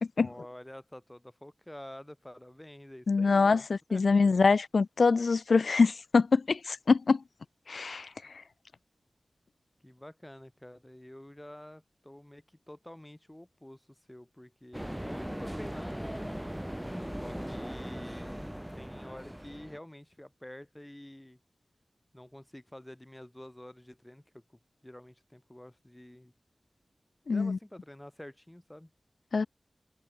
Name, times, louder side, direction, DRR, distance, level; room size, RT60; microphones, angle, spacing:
voice 1, 0.2-4.1 9.8-16.4 17.2-18.5 18.7-21.4 22.1-24.4 24.8-26.3 27.3-28.9, left 1 dB, 10° left, 1.7 m, -49 dB
voice 2, 3.1-7.2 7.7-8.1 27.3-27.6 29.3-29.5, left 4 dB, 80° left, 0.4 m, -24 dB
sound 1, 14.7-19.8, equal, 5° right, 1.0 m, -39 dB
wide cardioid pair, 90°, 0 cm